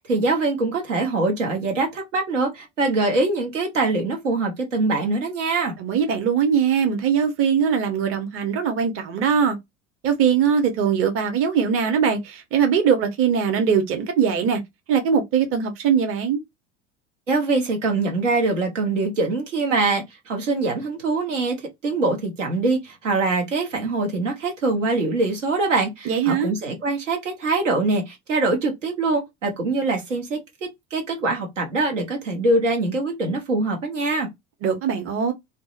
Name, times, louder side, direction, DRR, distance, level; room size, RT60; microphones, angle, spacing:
voice 1, 0.1-5.7 17.3-21.6 21.8-30.4 30.9-34.3, right 3 dB, 85° right, 1.0 m, -23 dB
voice 2, 5.8-9.6 10.0-14.6 14.9-16.4 26.1-26.5 34.6-35.3, right 7 dB, 35° right, 0.8 m, -21 dB
2.6 x 2.1 x 2.4 m
figure-of-eight pair, 70°, 36 cm